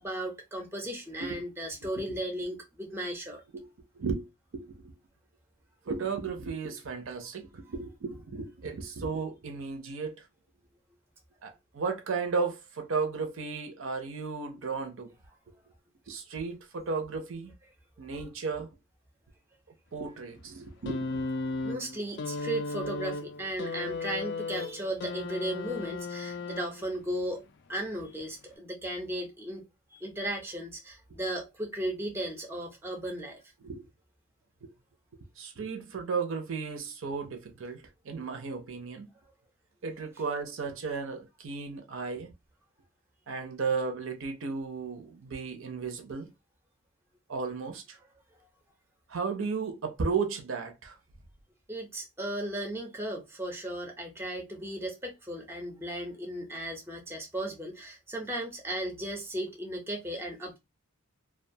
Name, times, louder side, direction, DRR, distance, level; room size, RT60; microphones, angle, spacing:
voice 1, 0.0-3.4 18.1-18.2 21.6-29.6 29.9-33.4 51.7-60.6, right 1 dB, 10° right, 0.5 m, -36 dB
voice 2, 5.9-10.2 11.4-15.1 16.1-17.5 18.0-18.7 19.9-21.2 33.6-33.9 34.6-34.7 35.4-39.1 39.8-42.3 43.3-46.3 47.3-48.0 49.1-51.0, right 5 dB, 65° right, 0.5 m, -34 dB
sound 1, 20.8-27.0 28.1-28.2, left 3 dB, 50° left, 0.4 m, -35 dB
2.4 x 2.2 x 2.6 m
head